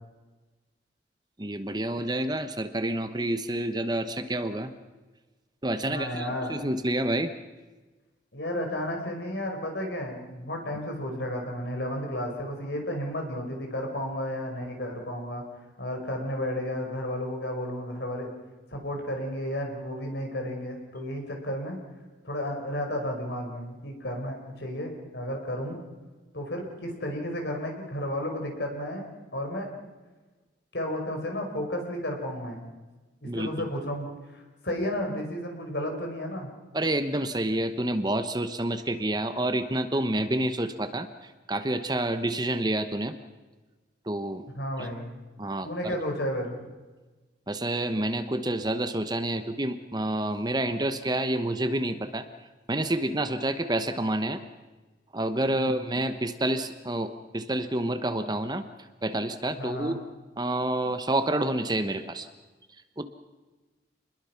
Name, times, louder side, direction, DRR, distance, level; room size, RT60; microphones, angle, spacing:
voice 1, 1.4-4.7 5.6-7.3 33.2-33.5 36.7-43.1 44.1-44.4 44.8-44.9 45.4-45.9 47.5-52.2 52.7-54.4 55.1-58.6 59.0-60.0 60.4-62.3 63.0-63.1, right 1 dB, 20° right, 9 dB, 1.0 m, -28 dB
voice 2, 5.9-6.6 8.3-15.4 15.8-18.3 18.7-21.8 22.2-25.8 26.3-29.0 29.3-29.7 30.7-32.7 33.2-34.1 34.3-36.5 44.5-45.1 45.6-46.6 55.5-55.9 59.6-60.0, left 1 dB, 65° left, 2 dB, 5.3 m, -32 dB
27.5 x 21.0 x 5.9 m, 1.2 s
head